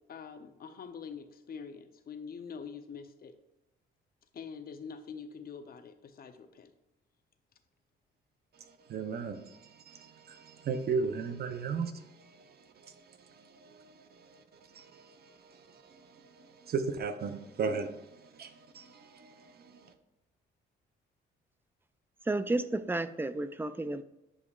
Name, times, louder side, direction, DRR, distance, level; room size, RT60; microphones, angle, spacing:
voice 1, 0.1-3.3 4.3-6.7, left 6 dB, 50° left, 0.8 m, -45 dB
voice 2, 8.9-12.5 12.8-12.9 13.4-14.4 14.7-19.9, right 5 dB, 55° right, 0.7 m, -37 dB
voice 3, 22.3-24.0, right 2 dB, 10° right, 0.4 m, -32 dB
9.8 x 5.2 x 2.4 m
cardioid pair, 90°, 20 cm